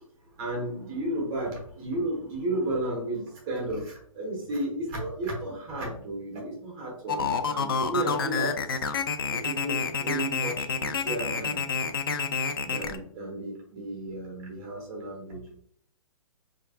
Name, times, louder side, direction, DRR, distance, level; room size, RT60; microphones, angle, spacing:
voice 1, 0.0-8.8 9.3-11.6 12.6-15.5, right 1 dB, 10° right, -1 dB, 0.5 m, -33 dB
sound 1, 7.1-13.0, left 5 dB, 40° left, 0.4 m, -28 dB
4.3 x 2.4 x 3.3 m, 0.62 s
hypercardioid pair, 175°, 18 cm